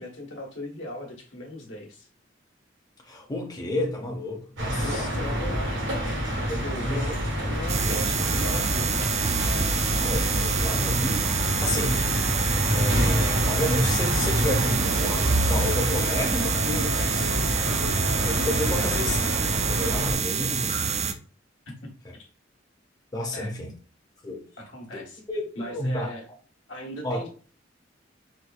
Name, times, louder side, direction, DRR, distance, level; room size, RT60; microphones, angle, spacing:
voice 1, 0.0-2.1 4.8-6.3 6.6-7.1 7.4-9.1 18.7-19.0 21.7-21.9 22.2-22.3 23.3-23.5 24.6-25.2 25.5-26.3 26.7-27.3, left 1 dB, 80° left, 1.1 m, -38 dB
voice 2, 3.1-5.1 6.5-7.1 7.7-7.9 8.2-8.3 9.9-11.3 11.6-12.1 12.7-17.3 18.2-19.2 19.7-20.8 23.1-23.7 24.2-24.4 24.9-26.1 27.0-27.2, left 1 dB, 20° left, 0.6 m, -31 dB
sound 1, 4.6-20.2, equal, 80° right, 1.5 m, -27 dB
sound 2, 7.7-21.1, right 5 dB, 35° right, 0.4 m, -27 dB
Wind instrument woodwind instrument, 14.6-20.1, right 1 dB, 50° left, 0.8 m, -43 dB
4.2 x 2.3 x 2.4 m
head